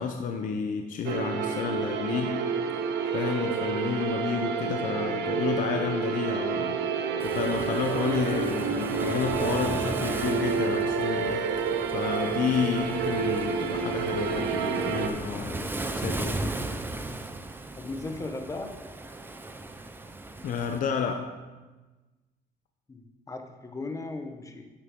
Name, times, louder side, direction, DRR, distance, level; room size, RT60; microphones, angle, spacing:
voice 1, 0.0-2.5 3.1-6.8 7.2-11.5 11.9-16.6 20.4-21.3, left 6 dB, 50° left, 5 dB, 0.7 m, -30 dB
sound 1, 1.0-15.1, right 6 dB, 80° right, 0.8 m, -29 dB
Waves surf, 7.2-20.8, right 2 dB, 10° right, 0.6 m, -37 dB
voice 2, 17.8-18.8 22.9-24.6, left 2 dB, 20° left, 5 dB, 1.0 m, -37 dB
11.0 x 6.6 x 3.7 m, 1.2 s
cardioid pair, 110°, 17 cm